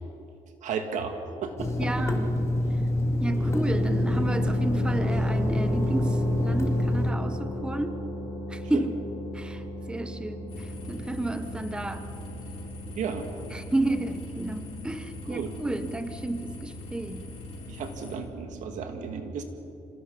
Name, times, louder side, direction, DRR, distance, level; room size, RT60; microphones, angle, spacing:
voice 1, 0.6-1.2 1.4-1.6 1.8-1.9 8.7-8.9 12.9-13.3 15.2-15.5 17.7-19.4, right 6 dB, 80° right, 5 dB, 2.2 m, -33 dB
Water tap faucet / Sink (filling or washing), 1.6-7.1, left 1 dB, 20° left, 2.5 m, -26 dB
voice 2, 1.8-2.4 3.2-8.0 8.5-8.9 9.3-12.1 13.5-17.3, right 1 dB, 5° right, 10 dB, 0.9 m, -32 dB
sound 1, 3.2-18.9, equal, 50° right, 5.6 m, -37 dB
sound 2, 10.5-18.2, left 3 dB, 50° left, 6.4 m, -43 dB
26.0 x 18.0 x 5.6 m, 2.6 s
cardioid pair, 120°, 13 cm